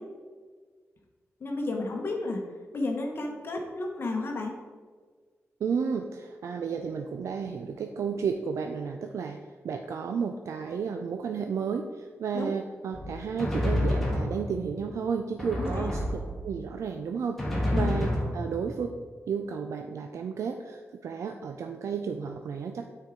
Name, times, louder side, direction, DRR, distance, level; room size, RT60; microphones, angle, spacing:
voice 1, 1.4-2.4 2.7-4.5 12.3-12.5 15.6-15.9 17.7-18.0, left 2 dB, 50° left, 2 dB, 0.9 m, -32 dB
voice 2, 5.6-9.4 9.6-17.4 17.7-18.9 19.3-22.9, right 6 dB, 85° right, 5 dB, 0.4 m, -32 dB
Drum, 12.9-14.8 15.4-16.7 17.4-18.9, left 1 dB, 5° left, 1.4 m, -29 dB
8.9 x 4.5 x 3.7 m, 1.5 s
wide cardioid pair, 160°, 5 cm